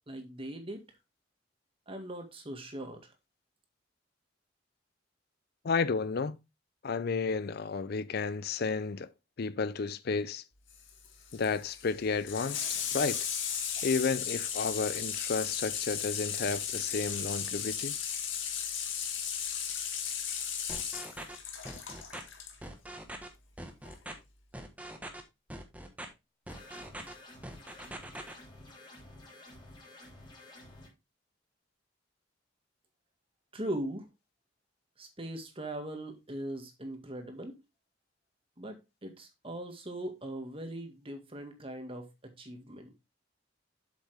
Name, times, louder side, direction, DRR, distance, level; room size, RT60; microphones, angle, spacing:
voice 1, 0.1-0.8 1.9-3.1 33.5-34.1 35.0-37.6 38.6-42.9, right 1 dB, 30° right, 1.9 m, -40 dB
voice 2, 5.6-6.4 6.8-9.1 9.4-10.4 11.3-13.2 13.8-18.0, left 4 dB, 55° left, 0.5 m, -32 dB
Water tap faucet / Sink (filling or washing), 10.7-22.5 23.9-24.0, left 8 dB, 75° left, 1.8 m, -36 dB
sound 1, 20.7-21.4 21.6-22.2 22.6-23.3 23.6-24.1 24.5-25.2 25.5-26.1 26.5-27.1 27.4-28.3, right 1 dB, 10° right, 1.3 m, -43 dB
sound 2, 26.5-30.9, left 1 dB, 25° left, 3.4 m, -52 dB
7.6 x 7.2 x 3.4 m
head